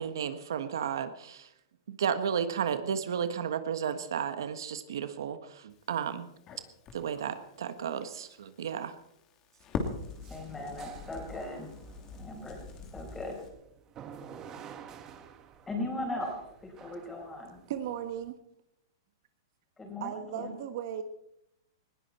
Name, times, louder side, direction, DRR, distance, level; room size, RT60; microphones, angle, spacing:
voice 1, 0.0-1.5 1.9-6.3 6.9-8.9, right 7 dB, 80° right, 10 dB, 1.5 m, -33 dB
Crackle, 5.7-13.5, left 5 dB, 30° left, 2.9 m, -43 dB
sound 1, 10.0-18.3, right 8 dB, 25° right, 1.6 m, -51 dB
voice 2, 10.3-11.7 12.2-12.6 12.9-13.4 15.7-17.6 19.8-20.6, left 1 dB, 10° left, 2 dB, 5.2 m, -38 dB
voice 3, 17.7-18.4 20.0-21.0, right 9 dB, 55° right, 8 dB, 1.4 m, -36 dB
20.0 x 16.0 x 4.4 m, 0.79 s
hypercardioid pair, 145°, 2 cm